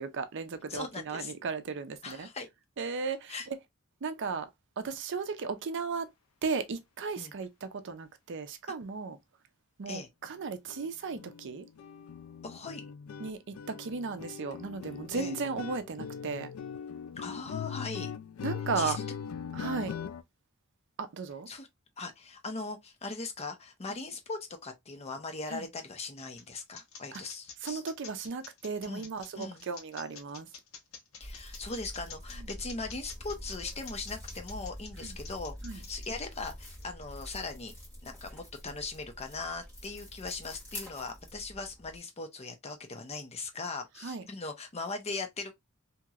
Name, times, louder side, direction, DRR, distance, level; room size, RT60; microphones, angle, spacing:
voice 1, 0.0-2.3 2.8-3.3 4.0-4.5 4.8-6.1 6.4-9.2 9.8-11.6 13.2-16.5 18.4-19.0 19.5-19.9 21.0-21.5 25.5-25.6 27.1-27.2 27.6-30.5 35.0-35.1 35.6-35.8 44.0-44.2, right 5 dB, 60° right, 0.5 m, -35 dB
voice 2, 0.7-1.3 2.0-2.5 3.3-3.5 7.2-7.3 9.9-10.1 12.4-12.9 15.1-15.4 17.2-18.1 18.7-19.0 21.5-21.7 22.0-27.8 28.9-29.1 29.3-29.6 31.2-37.7 38.0-45.5, left 3 dB, 30° left, 0.6 m, -39 dB
sound 1, 10.2-10.4 10.7-10.9 11.1-20.2, left 7 dB, 90° left, 0.3 m, -41 dB
sound 2, 25.8-37.4, left 6 dB, 70° left, 0.9 m, -48 dB
sound 3, 31.2-42.0, equal, 10° left, 1.9 m, -46 dB
2.9 x 2.9 x 2.3 m
head